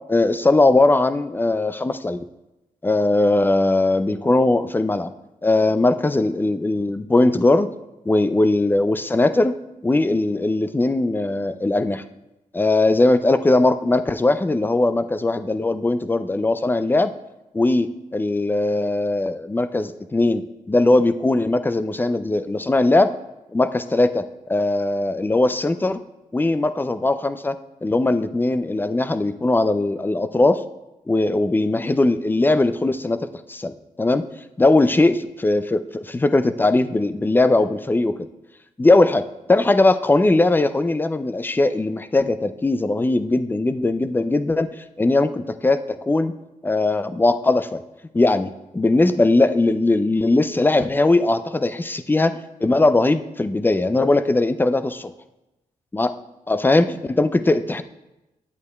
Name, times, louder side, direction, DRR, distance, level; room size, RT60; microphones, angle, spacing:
voice 1, 0.1-2.2 2.8-5.1 5.4-7.7 8.1-9.5 9.8-12.0 12.5-17.1 17.5-23.1 23.5-26.0 26.3-30.6 31.1-34.3 34.6-35.2 35.4-38.3 38.8-44.7 45.0-46.3 46.6-47.8 48.1-55.0 55.9-56.1 56.5-57.8, left 2 dB, 15° left, 11 dB, 0.4 m, -19 dB
10.5 x 8.1 x 2.3 m, 0.96 s
cardioid pair, 70°, 13 cm